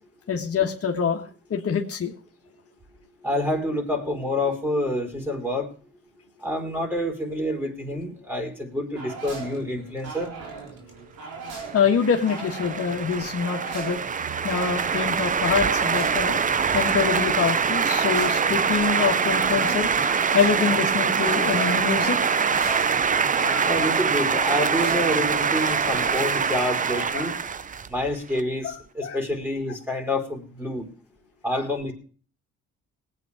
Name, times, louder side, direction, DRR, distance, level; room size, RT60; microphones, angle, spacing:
voice 1, 0.3-2.1 11.7-14.0 14.4-16.4 16.7-22.3 23.4-23.9 25.9-26.0 27.1-27.3 28.6-28.7 29.0-29.2 31.5-31.6, left 6 dB, 50° left, 1 dB, 1.7 m, -25 dB
voice 2, 3.2-5.7 6.4-10.3 23.7-27.3 27.9-30.9 31.4-31.9, left 1 dB, 5° right, 2 dB, 4.2 m, -27 dB
sound 1, 8.9-27.0, right 4 dB, 90° right, 3.8 m, -38 dB
sound 2, 11.7-28.4, right 6 dB, 25° right, 0.5 m, -24 dB
19.5 x 8.7 x 4.9 m, 0.41 s
cardioid pair, 90°, 30 cm